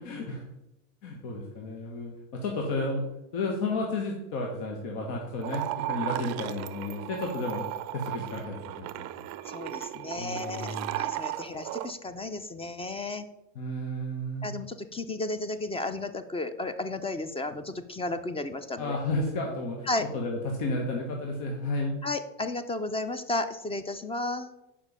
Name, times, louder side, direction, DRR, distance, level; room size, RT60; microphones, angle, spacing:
voice 1, 0.0-0.4 1.0-3.0 3.3-9.0 10.2-10.9 13.5-14.4 18.8-19.9 20.1-21.9, left 2 dB, 65° left, 0 dB, 1.6 m, -32 dB
sound 1, 5.4-11.9, right 15 dB, 40° right, 0.5 m, -35 dB
voice 2, 9.5-13.3 14.4-19.0 19.9-20.0 22.0-24.6, left 2 dB, 15° left, 11 dB, 0.5 m, -33 dB
6.9 x 5.4 x 5.6 m, 0.90 s
supercardioid pair, 115°, 40 cm